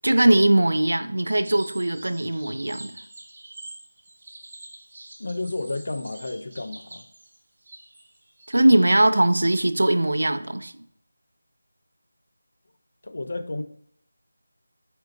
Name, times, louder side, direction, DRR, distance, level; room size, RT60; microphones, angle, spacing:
voice 1, 0.0-2.9 8.5-10.7, right 1 dB, 75° right, 11 dB, 0.3 m, -20 dB
sound 1, 1.2-8.9, right 2 dB, 45° right, 1.0 m, -45 dB
voice 2, 5.2-7.1 13.0-13.6, left 2 dB, 60° left, 9 dB, 0.4 m, -31 dB
4.3 x 2.4 x 3.7 m, 0.70 s
figure-of-eight pair, 170°, 0 cm